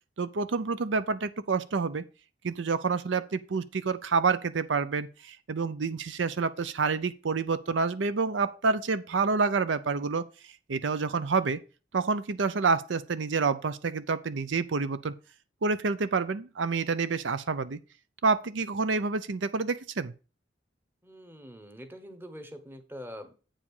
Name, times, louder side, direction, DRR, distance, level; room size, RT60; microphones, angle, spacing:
voice 1, 0.2-2.0 2.4-10.2 10.7-11.6 11.9-15.1 15.6-17.8 18.2-20.1, right 4 dB, 90° right, 0.6 m, -28 dB
voice 2, 21.0-23.3, equal, 10° right, 1.0 m, -44 dB
8.6 x 5.0 x 5.4 m
head